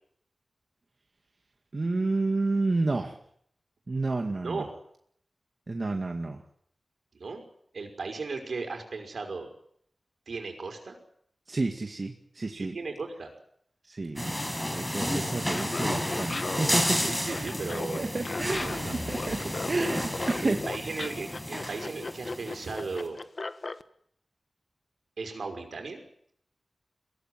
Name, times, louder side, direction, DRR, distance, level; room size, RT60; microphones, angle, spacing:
voice 1, 1.7-3.2 3.9-4.7 5.7-6.4 11.5-12.8 13.9-14.3 14.7-17.5 18.0-19.4 19.7-20.6, right 3 dB, 45° right, 4 dB, 2.1 m, -30 dB
voice 2, 4.4-4.7 7.1-7.4 7.7-9.5 10.3-11.0 12.5-13.3 16.9-18.1 18.6-19.0 20.4-23.2 25.2-26.0, right 4 dB, 75° right, 5 dB, 5.6 m, -36 dB
sound 1, 14.2-22.9, equal, 10° left, 5.3 m, -32 dB
Laughter, 15.5-23.8, left 3 dB, 50° left, 1.3 m, -36 dB
sound 2, 17.6-21.7, left 3 dB, 65° left, 4.7 m, -47 dB
23.0 x 17.5 x 9.6 m, 0.67 s
wide cardioid pair, 75°, 0 cm